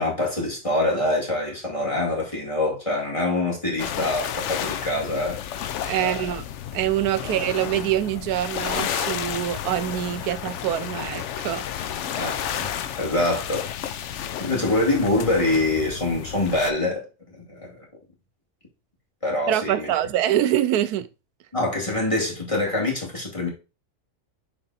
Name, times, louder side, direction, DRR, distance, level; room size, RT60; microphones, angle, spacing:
voice 1, 0.0-5.4 6.0-6.3 7.2-7.3 12.2-13.9 14.4-17.9 19.2-19.9 21.5-23.5, left 2 dB, 20° left, 2.3 m, -25 dB
sound 1, 3.8-16.7, left 10 dB, 65° left, 0.7 m, -32 dB
voice 2, 5.8-6.4 6.7-11.6 19.5-21.1, right 12 dB, 90° right, 1.1 m, -25 dB
6.7 x 4.2 x 4.1 m
omnidirectional pair, 1.6 m